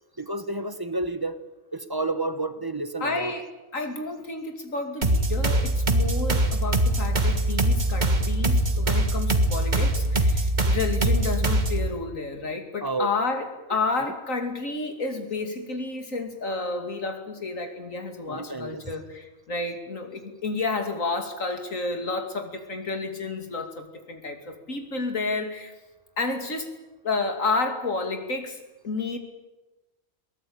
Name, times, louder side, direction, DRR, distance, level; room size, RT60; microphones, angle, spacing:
voice 1, 0.2-1.4 1.7-3.3 12.8-13.1 18.3-18.9, right 2 dB, 20° right, 11 dB, 1.1 m, -30 dB
voice 2, 3.0-25.7 26.2-26.7 27.0-28.6 28.8-29.2, left 3 dB, 75° left, 6 dB, 3.0 m, -30 dB
sound 1, 5.0-11.9, right 1 dB, 35° right, 1.8 m, -23 dB
22.5 x 18.5 x 8.8 m, 1.1 s
omnidirectional pair, 1.4 m